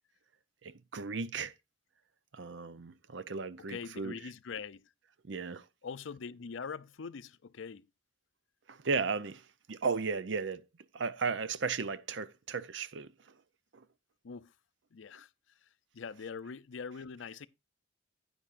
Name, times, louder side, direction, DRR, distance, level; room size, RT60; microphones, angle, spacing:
voice 1, 0.6-1.5 2.3-4.2 5.2-5.7 8.7-10.7 10.9-13.1 13.7-13.8, right 4 dB, 70° right, 0.6 m, -35 dB
voice 2, 3.7-4.8 5.8-7.9 14.2-14.5 14.9-15.3 15.9-17.5, left 5 dB, 75° left, 0.5 m, -43 dB
10.0 x 9.6 x 2.5 m
head